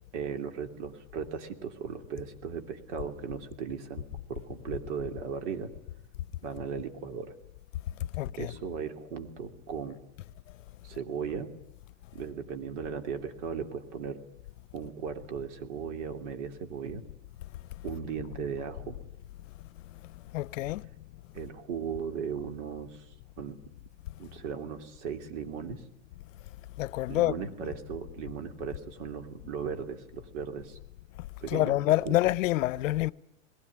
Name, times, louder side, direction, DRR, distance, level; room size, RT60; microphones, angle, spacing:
voice 1, 0.1-5.7 6.4-7.3 8.4-10.0 10.8-11.5 12.1-14.2 14.7-17.0 17.8-19.0 21.3-23.0 23.4-23.6 24.2-25.8 27.1-30.8 31.4-32.2, right 7 dB, 65° right, 3.1 m, -37 dB
voice 2, 8.1-8.5 20.3-20.9 26.8-27.3 27.6-27.7 31.5-33.1, left 16 dB, 80° left, 0.7 m, -27 dB
21.0 x 17.0 x 9.7 m
supercardioid pair, 145°, 38 cm